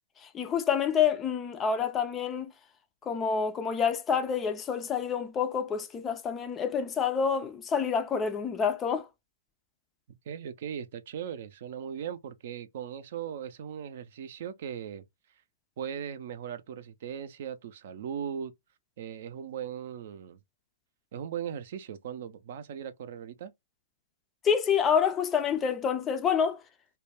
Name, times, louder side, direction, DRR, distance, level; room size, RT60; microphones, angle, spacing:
voice 1, 0.2-2.5 3.0-9.1 24.4-26.6, left 7 dB, 20° left, 0.4 m, -28 dB
voice 2, 10.3-15.0 15.8-18.5 19.0-20.4 21.1-23.5, right 8 dB, 50° right, 0.5 m, -38 dB
2.3 x 2.2 x 3.3 m
hypercardioid pair, 130°, 0 cm